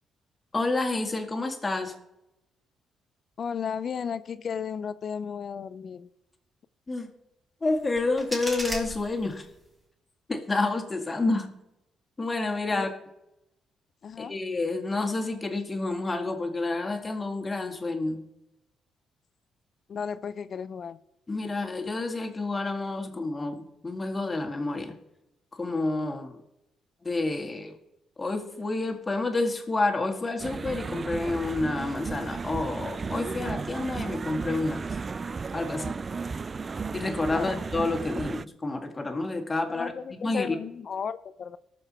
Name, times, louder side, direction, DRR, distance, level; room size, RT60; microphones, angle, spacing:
voice 1, 0.5-2.0 6.9-7.1 7.6-9.5 10.3-11.5 12.2-12.9 14.2-18.2 21.3-25.0 25.5-26.4 27.0-27.8 28.2-35.0 35.5-35.9 36.9-40.6, left 2 dB, 25° left, 2.1 m, -29 dB
voice 2, 3.4-6.1 12.7-12.9 14.0-14.4 19.9-21.0 37.3-37.5 39.7-41.6, left 7 dB, 50° left, 0.5 m, -34 dB
sound 1, 7.7-9.7, equal, 15° right, 4.2 m, -37 dB
sound 2, 30.4-38.5, right 4 dB, 35° right, 0.3 m, -34 dB
18.5 x 7.0 x 4.4 m
cardioid pair, 90°, 0 cm